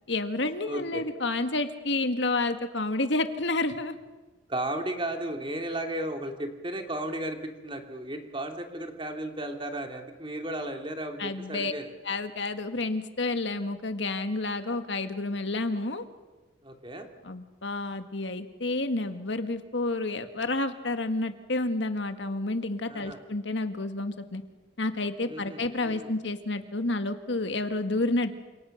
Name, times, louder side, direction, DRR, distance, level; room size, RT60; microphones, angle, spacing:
voice 1, 0.1-4.0 11.2-11.7 12.0-16.1 17.2-24.4 24.8-28.4, left 2 dB, 70° left, 8 dB, 1.9 m, -30 dB
voice 2, 0.7-1.0 4.5-11.9 16.6-17.1 22.9-23.2 25.2-26.1, right 1 dB, 25° right, 5 dB, 2.5 m, -34 dB
29.0 x 27.5 x 6.6 m, 1.1 s
head